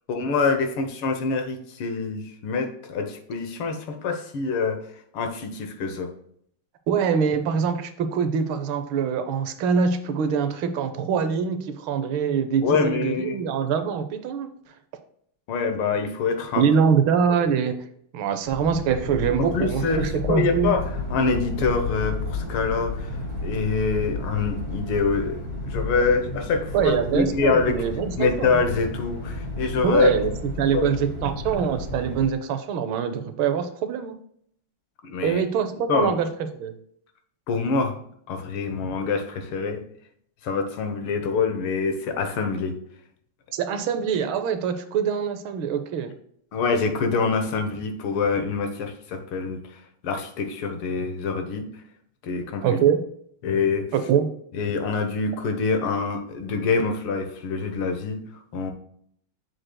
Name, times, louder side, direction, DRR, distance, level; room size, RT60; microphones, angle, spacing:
voice 1, 0.1-4.8 5.1-6.1 12.6-13.5 15.5-16.7 19.4-20.8 21.1-23.2 23.4-27.8 28.2-30.1 30.7-30.9 35.0-35.4 35.9-36.2 37.5-38.0 38.3-39.8 40.4-42.8 46.5-51.7 52.2-52.8 53.4-53.9 54.5-58.2 58.5-58.7, left 4 dB, 80° left, 5 dB, 1.9 m, -25 dB
voice 2, 6.9-14.5 16.5-17.7 18.1-20.7 26.7-28.6 29.8-30.3 30.6-34.1 35.2-36.3 36.5-36.7 43.5-46.1 52.6-53.0 53.9-54.3, right 7 dB, 75° right, 9 dB, 1.5 m, -24 dB
sound 1, 18.5-32.2, left 2 dB, 15° left, 2.5 m, -32 dB
7.5 x 6.5 x 2.2 m, 0.67 s
omnidirectional pair, 2.3 m